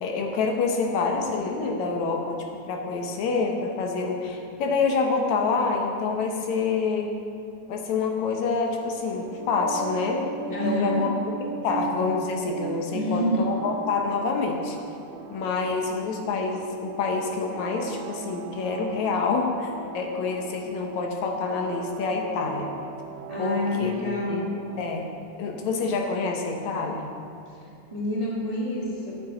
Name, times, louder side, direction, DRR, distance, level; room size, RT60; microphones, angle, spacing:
voice 1, 0.0-7.1 7.7-11.1 11.6-14.8 15.3-22.7 23.4-23.9 24.3-24.4 24.8-25.1 25.4-27.0, left 4 dB, 75° left, 2 dB, 2.2 m, -27 dB
sound 1, 9.2-25.1, right 8 dB, 85° right, 1.5 m, -39 dB
voice 2, 10.5-11.1 12.9-13.5 23.3-24.5 27.4-29.2, left 1 dB, 25° right, -5 dB, 0.8 m, -28 dB
14.0 x 9.2 x 3.9 m, 2.6 s
omnidirectional pair, 3.5 m